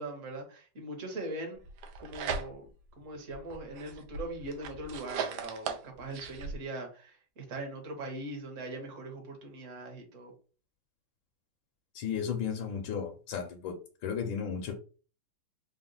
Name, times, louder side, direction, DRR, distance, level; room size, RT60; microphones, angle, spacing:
voice 1, 0.0-1.6 2.0-2.7 3.0-10.3, right 2 dB, 45° right, 2 dB, 1.2 m, -41 dB
sound 1, 1.7-2.9 3.3-6.5, right 6 dB, 75° right, 1.2 m, -38 dB
voice 2, 11.9-13.8 14.0-14.7, left 7 dB, 75° left, 1 dB, 1.3 m, -34 dB
4.0 x 2.1 x 3.8 m, 0.37 s
omnidirectional pair, 2.4 m